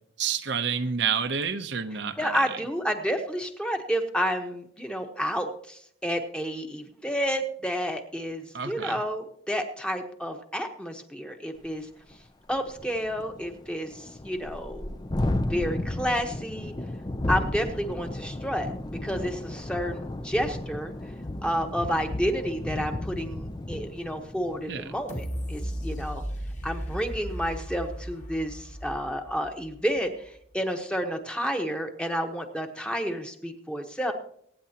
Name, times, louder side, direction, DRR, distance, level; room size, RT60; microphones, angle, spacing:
voice 1, 0.2-2.3 8.5-9.0 24.7-24.9, right 6 dB, 65° right, 0.7 m, -29 dB
voice 2, 2.2-11.9 12.5-14.9 15.5-16.7 17.3-21.1 21.4-26.2 26.6-34.1, equal, 5° left, 1.1 m, -30 dB
Thunderstorm, 11.6-11.7 12.1-12.2 12.5-26.1, left 1 dB, 20° left, 0.5 m, -34 dB
sound 1, 25.1-30.0 30.4-30.5, equal, 40° left, 2.1 m, -36 dB
24.0 x 9.4 x 2.9 m
head